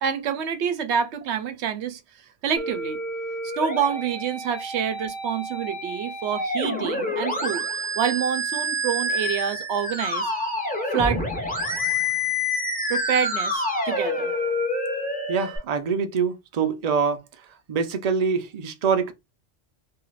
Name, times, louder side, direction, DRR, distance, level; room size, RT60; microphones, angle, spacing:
voice 1, 0.0-2.0 2.4-3.0 3.6-10.3 10.9-11.2 12.9-14.3, right 7 dB, 75° right, 0.9 m, -27 dB
Musical instrument, 2.6-15.6, left 1 dB, 10° left, 0.7 m, -28 dB
voice 2, 15.3-17.2 17.7-19.1, right 6 dB, 50° right, 0.5 m, -24 dB
2.7 x 2.4 x 3.1 m
omnidirectional pair, 1.2 m